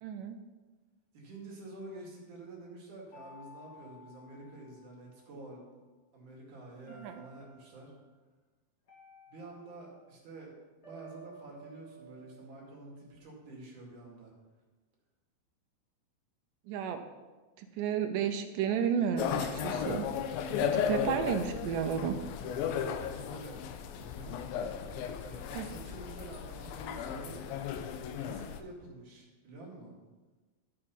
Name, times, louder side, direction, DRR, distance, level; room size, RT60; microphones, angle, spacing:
voice 1, 0.0-0.4 7.0-7.2 16.7-17.0 17.6-20.1 20.6-22.2 25.5-25.7, right 8 dB, 80° right, 6 dB, 2.0 m, -32 dB
voice 2, 1.1-5.7 6.1-7.9 9.3-10.5 10.8-14.3 20.5-21.0 22.4-23.6 23.9-24.4 25.2-27.7 28.1-29.9, right 2 dB, 55° right, -3 dB, 3.6 m, -48 dB
sound 1, 3.1-5.5 6.9-7.9 8.9-10.2 10.8-13.2, right 1 dB, 35° left, 1.9 m, -55 dB
sound 2, 19.2-28.6, left 8 dB, 80° left, 2.4 m, -35 dB
13.0 x 5.4 x 5.6 m, 1.2 s
omnidirectional pair, 4.4 m